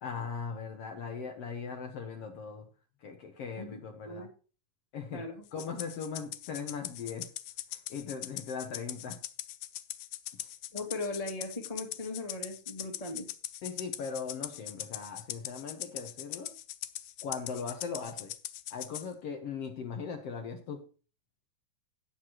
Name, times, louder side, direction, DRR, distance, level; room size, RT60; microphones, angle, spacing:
voice 1, 0.0-2.7 3.0-4.3 4.9-7.3 7.7-9.2 10.4-10.5 13.6-16.5 17.2-18.3 18.7-20.9, left 5 dB, 60° left, 4 dB, 2.1 m, -39 dB
voice 2, 5.1-5.4 10.7-13.3, left 2 dB, 15° left, 2 dB, 2.0 m, -38 dB
Rattle (instrument), 5.6-19.1, left 14 dB, 75° left, 1.9 m, -41 dB
18.0 x 7.1 x 3.0 m, 0.35 s
omnidirectional pair, 3.3 m